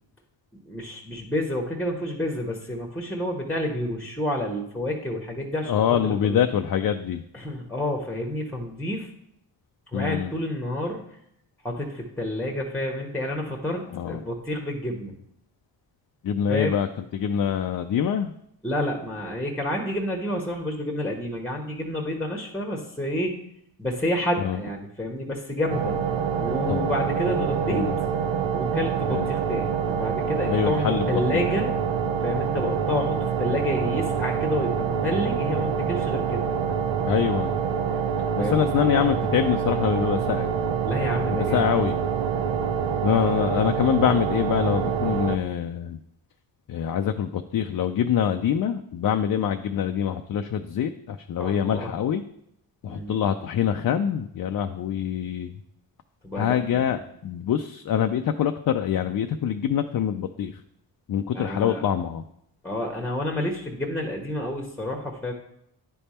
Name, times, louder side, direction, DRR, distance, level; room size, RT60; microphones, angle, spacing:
voice 1, 0.7-5.7 6.0-6.4 7.3-9.1 9.9-11.0 11.6-15.2 16.5-16.7 18.6-23.4 23.8-26.0 26.4-27.9 28.5-31.7 32.2-36.4 38.4-38.7 40.8-41.7 51.4-51.9 52.9-53.1 56.2-57.0 61.3-61.8 62.6-65.3, left 1 dB, 5° left, 2 dB, 1.1 m, -29 dB
voice 2, 5.7-7.2 9.9-10.3 13.9-14.2 16.2-16.9 17.1-18.3 24.4-24.6 26.7-26.9 27.7-28.0 29.1-29.3 30.5-31.4 37.1-37.5 38.5-40.5 41.5-42.0 43.0-46.0 46.7-52.2 52.8-55.5 56.4-60.5 61.1-62.2, left 9 dB, 50° left, 7 dB, 0.5 m, -25 dB
sound 1, 25.7-45.4, right 7 dB, 75° right, 0.6 m, -26 dB
10.0 x 3.4 x 4.2 m, 0.75 s
cardioid pair, 70°, 44 cm